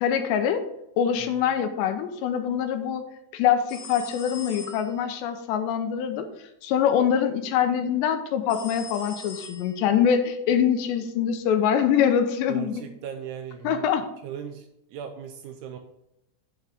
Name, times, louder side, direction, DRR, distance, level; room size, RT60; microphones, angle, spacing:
voice 1, 0.0-0.6 1.0-3.1 3.3-6.3 6.6-12.8 13.6-14.0, left 8 dB, 85° left, 8 dB, 2.8 m, -24 dB
sound 1, 3.7-5.1 8.5-10.1, left 3 dB, 40° left, 2.4 m, -42 dB
voice 2, 12.5-13.8 14.2-15.8, right 8 dB, 80° right, 5 dB, 2.5 m, -38 dB
8.5 x 8.1 x 3.5 m, 0.82 s
omnidirectional pair, 5.2 m